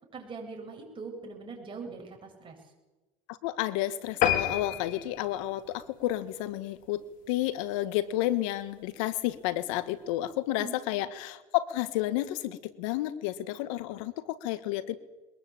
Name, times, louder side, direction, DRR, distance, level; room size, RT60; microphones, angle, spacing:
voice 1, 0.1-2.6 10.6-11.0, right 4 dB, 30° right, 2 dB, 7.9 m, -42 dB
voice 2, 3.3-7.0 7.3-14.9, left 14 dB, 80° left, 15 dB, 1.5 m, -31 dB
sound 1, 4.2-7.0 7.4-7.6 8.1-8.2 8.5-8.6 8.8-8.9, left 10 dB, 55° left, 3.0 m, -30 dB
22.0 x 20.5 x 8.9 m, 1.2 s
supercardioid pair, 95°, 16 cm